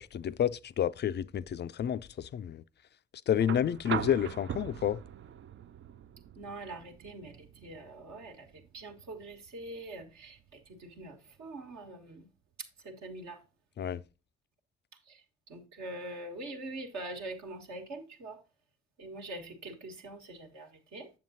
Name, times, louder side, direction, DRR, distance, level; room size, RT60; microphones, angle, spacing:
voice 1, 0.0-2.6 3.3-5.0 13.8-14.0, left 9 dB, 35° left, 0.4 m, -30 dB
sound 1, 3.4-11.4 12.9-13.0, right 9 dB, 40° right, 0.4 m, -42 dB
voice 2, 6.3-12.3 12.8-13.4 15.1-18.4 19.0-21.1, right 2 dB, 60° right, 1.3 m, -44 dB
7.6 x 7.0 x 2.7 m
hypercardioid pair, 40°, 31 cm